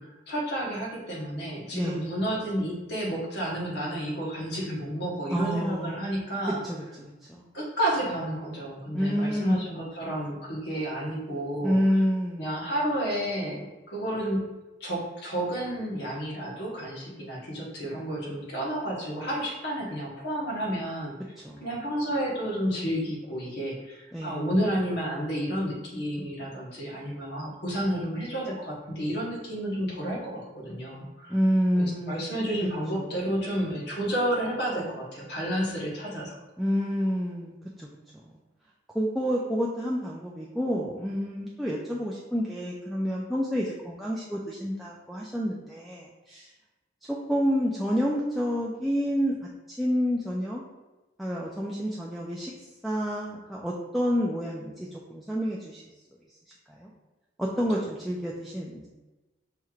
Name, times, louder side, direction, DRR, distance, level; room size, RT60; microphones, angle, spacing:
voice 1, 0.0-6.6 7.5-11.8 12.4-14.5 14.8-21.1 21.6-31.4 31.7-36.4, equal, 65° left, -3 dB, 1.2 m, -31 dB
voice 2, 5.3-6.2 6.6-7.5 8.9-9.6 11.6-12.7 21.4-21.6 24.1-24.4 31.3-32.4 32.9-33.1 36.6-37.9 38.9-46.5 47.1-49.3 49.7-50.6 51.2-52.5 52.8-55.8 56.7-56.9 57.4-58.9, equal, ahead, -5 dB, 0.3 m, -29 dB
5.5 x 3.1 x 2.4 m, 1.1 s
head